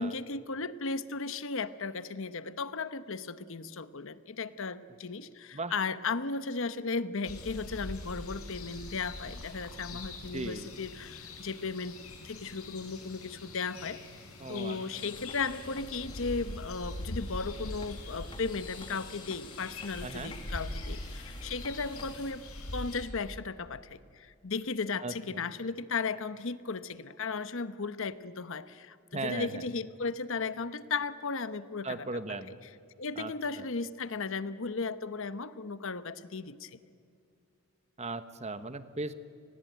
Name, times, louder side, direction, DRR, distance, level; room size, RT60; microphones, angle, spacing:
voice 1, 0.0-12.0 12.2-14.0 14.5-22.4 22.7-32.2 33.0-36.8, left 4 dB, 60° left, 13 dB, 1.0 m, -36 dB
sound 1, 7.3-23.0, left 2 dB, 75° left, 5.4 m, -43 dB
voice 2, 10.3-10.7 14.4-14.8 20.0-20.3 25.0-25.4 29.1-29.7 31.8-32.6 33.2-33.3 33.6-33.7 38.0-39.1, right 3 dB, 30° right, 11 dB, 1.1 m, -37 dB
sound 2, 15.0-22.3, left 3 dB, 25° left, 1.1 m, -52 dB
30.0 x 20.0 x 9.2 m, 2.4 s
head